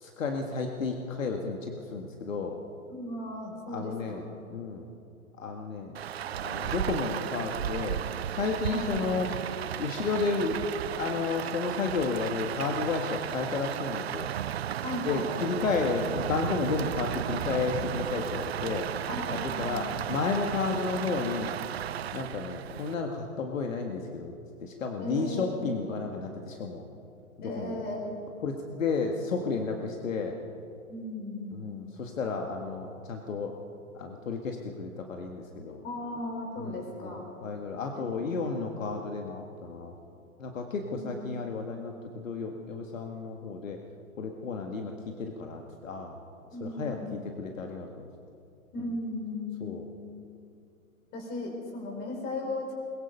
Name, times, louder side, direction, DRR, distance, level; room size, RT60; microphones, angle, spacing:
voice 1, 0.0-2.5 3.7-4.2 4.5-4.9 5.4-5.9 6.4-8.0 8.4-9.3 9.8-10.6 11.0-14.3 15.0-18.9 19.6-21.6 22.1-24.3 24.6-26.8 27.4-27.8 28.4-30.4 31.5-33.5 34.0-35.8 36.6-36.8 37.0-40.0 40.4-43.8 44.2-46.2 46.6-48.1 49.6-49.9, left 4 dB, 60° left, 3 dB, 2.0 m, -32 dB
voice 2, 2.9-4.2 8.7-9.0 14.8-15.3 19.1-20.1 25.0-25.8 27.4-28.2 30.9-31.7 35.8-37.2 37.7-38.5 40.9-41.3 46.5-47.2 48.7-50.1 51.1-52.7, left 2 dB, 20° left, 1 dB, 5.0 m, -37 dB
Rain, 5.9-22.9, right 10 dB, 45° right, 0.5 m, -34 dB
22.0 x 21.5 x 5.5 m, 2.7 s
figure-of-eight pair, 120°, 44 cm